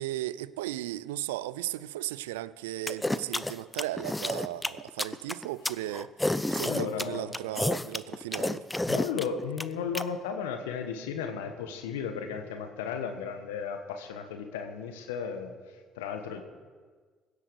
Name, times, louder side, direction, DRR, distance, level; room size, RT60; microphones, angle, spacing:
voice 1, 0.0-6.2 6.5-8.7, right 15 dB, 85° right, 0.3 m, -36 dB
sound 1, 2.9-10.0, left 1 dB, 10° left, 0.7 m, -30 dB
voice 2, 6.7-7.3 8.9-16.4, left 6 dB, 85° left, 1.3 m, -35 dB
17.0 x 8.1 x 6.8 m
hypercardioid pair, 55°, 0 cm